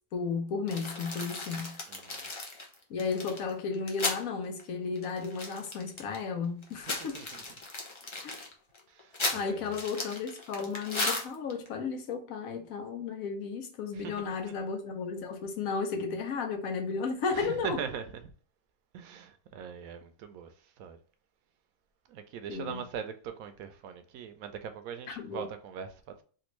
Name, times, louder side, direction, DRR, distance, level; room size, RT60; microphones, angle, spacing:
voice 1, 0.1-1.8 2.9-7.2 8.2-8.3 9.3-17.8 22.5-22.8 25.1-25.5, left 5 dB, 85° left, 1.2 m, -34 dB
sound 1, 0.7-4.2 4.6-4.7 5.0-6.2 6.6-11.7, left 3 dB, 40° left, 0.4 m, -36 dB
voice 2, 1.9-2.3 7.1-7.4 8.9-9.8 13.9-14.2 14.5-14.6 17.3-18.1 18.9-20.5 20.8-21.0 22.1-26.2, right 7 dB, 90° right, 1.0 m, -41 dB
3.4 x 2.5 x 3.0 m
omnidirectional pair, 1.4 m